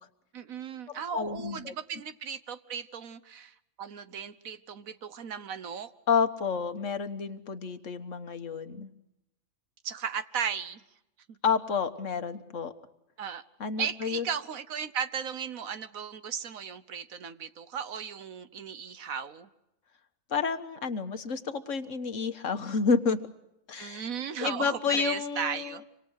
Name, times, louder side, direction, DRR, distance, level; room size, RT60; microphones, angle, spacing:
voice 1, 0.3-5.9 9.8-10.8 13.2-13.4 13.8-19.5 23.7-25.8, right 7 dB, 75° right, 12 dB, 1.5 m, -36 dB
voice 2, 0.9-1.7 6.1-8.9 11.4-12.7 13.6-14.2 20.3-23.2 23.7-24.1 24.4-25.8, left 5 dB, 65° left, 9 dB, 1.7 m, -30 dB
26.0 x 26.0 x 6.5 m, 0.87 s
omnidirectional pair, 1.4 m